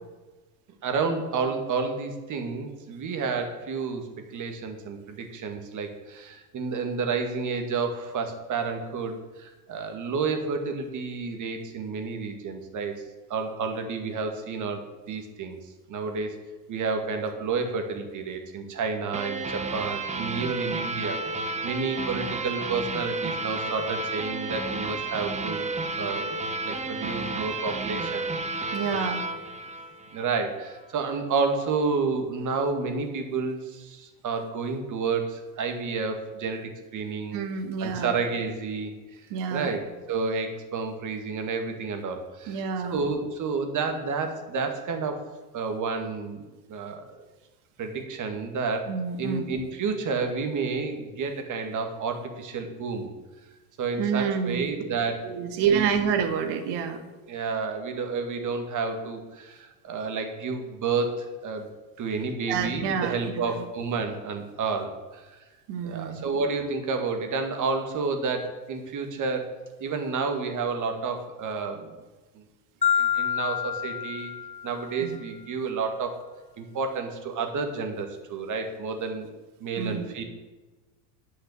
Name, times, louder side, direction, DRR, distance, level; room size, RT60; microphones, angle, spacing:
voice 1, 0.8-12.9 13.3-15.6 15.9-16.3 16.7-25.7 26.0-26.4 26.6-28.2 28.6-28.8 30.1-37.4 37.8-39.3 39.5-45.2 45.5-47.2 47.8-48.9 49.2-53.1 53.8-55.9 57.2-65.4 65.8-69.5 69.8-71.9 72.3-72.4 72.9-74.3 74.6-76.2 76.6-79.3 79.6-80.2, right 4 dB, 35° right, 5 dB, 2.1 m, -30 dB
sound 1, 19.1-30.4, right 3 dB, 15° right, 0.8 m, -32 dB
voice 2, 28.7-29.2 37.3-38.1 39.3-39.8 42.5-43.0 48.9-49.4 54.0-54.7 55.2-57.0 62.5-63.1 63.5-63.6 65.7-66.3 75.0-75.2 79.8-80.2, right 7 dB, 55° right, 7 dB, 1.8 m, -28 dB
Marimba xylophone, 72.8-75.0, left 8 dB, 15° left, 0.7 m, -27 dB
10.0 x 5.9 x 8.5 m, 1.2 s
supercardioid pair, 115°, 50 cm